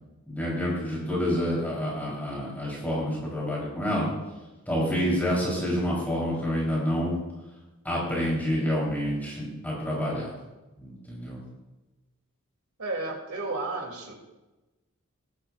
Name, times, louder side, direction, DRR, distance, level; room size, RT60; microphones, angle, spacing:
voice 1, 0.3-4.1 4.7-7.2 7.8-10.3 10.8-11.4, equal, 10° left, -5 dB, 3.4 m, -28 dB
voice 2, 12.8-14.1, right 2 dB, 90° right, 2 dB, 2.6 m, -32 dB
17.5 x 11.5 x 2.4 m, 1.1 s
head